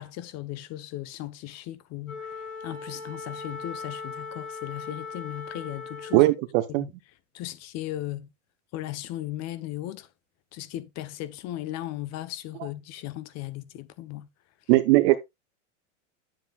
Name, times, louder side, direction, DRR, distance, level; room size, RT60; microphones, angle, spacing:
voice 1, 0.0-2.4 2.6-6.3 6.8-6.9 7.3-8.3 8.7-10.1 10.5-14.3, left 14 dB, 40° left, 1.0 m, -37 dB
Wind instrument woodwind instrument, 2.0-6.4, left 4 dB, 90° left, 4.2 m, -39 dB
voice 2, 6.1-6.9 14.7-15.2, right 18 dB, 60° right, 1.0 m, -19 dB
10.5 x 7.5 x 2.4 m
supercardioid pair, 130°, 39 cm